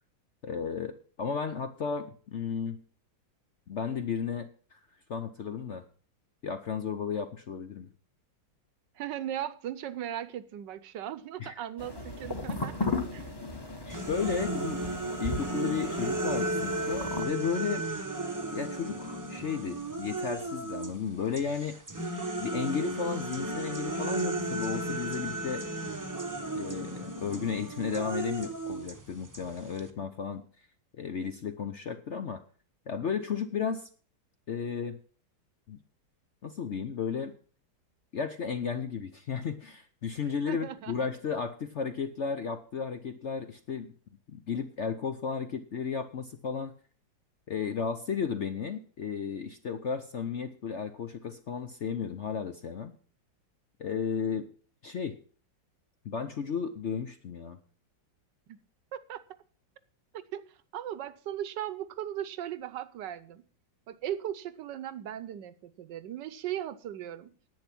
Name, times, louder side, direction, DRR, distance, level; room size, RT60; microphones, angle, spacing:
voice 1, 0.4-2.8 3.7-4.8 5.1-5.8 6.4-7.9 11.4-11.5 13.8-14.8 15.2-17.8 18.5-21.7 22.4-25.7 26.5-30.4 31.0-32.4 32.9-33.9 34.5-35.0 35.7-35.8 36.4-37.3 38.1-43.9 44.3-46.7 47.5-52.9 53.8-54.5 54.8-55.2 56.0-57.6, left 6 dB, 55° left, 9 dB, 0.8 m, -34 dB
voice 2, 9.0-13.3 40.5-41.1 58.5-58.6 58.9-59.2 60.1-63.4 63.9-67.3, right 11 dB, 75° right, 15 dB, 1.4 m, -38 dB
sound 1, 11.8-17.2, left 3 dB, 15° left, 1.3 m, -36 dB
sound 2, 13.9-21.0 21.3-29.9, right 2 dB, 15° right, 0.8 m, -34 dB
10.5 x 8.7 x 5.9 m, 0.42 s
omnidirectional pair, 2.0 m